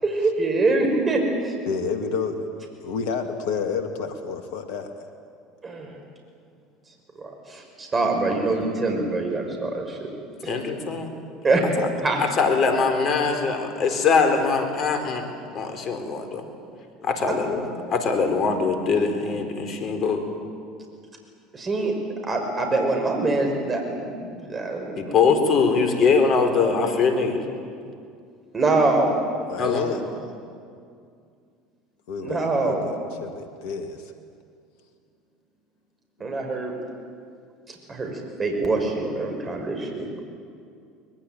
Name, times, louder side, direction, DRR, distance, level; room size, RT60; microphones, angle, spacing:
voice 1, 0.0-1.5 5.6-5.9 7.2-10.1 10.4-10.6 11.4-11.6 12.0-12.2 17.3-17.4 21.5-21.9 22.2-25.1 28.5-29.2 32.2-32.9 36.2-36.7 37.9-40.0, right 2 dB, 30° right, 2 dB, 5.7 m, -24 dB
voice 2, 1.7-4.9 10.9-11.0 11.8-11.9 29.5-30.0 32.1-34.1 36.2-36.3, left 5 dB, 70° left, 6 dB, 2.0 m, -30 dB
voice 3, 10.5-11.1 11.8-11.9 12.2-15.2 15.5-16.4 17.0-20.2 25.0-27.4 29.6-30.0, left 5 dB, 45° left, 6 dB, 4.2 m, -22 dB
23.0 x 21.0 x 9.1 m, 2.3 s
hypercardioid pair, 70°, 0 cm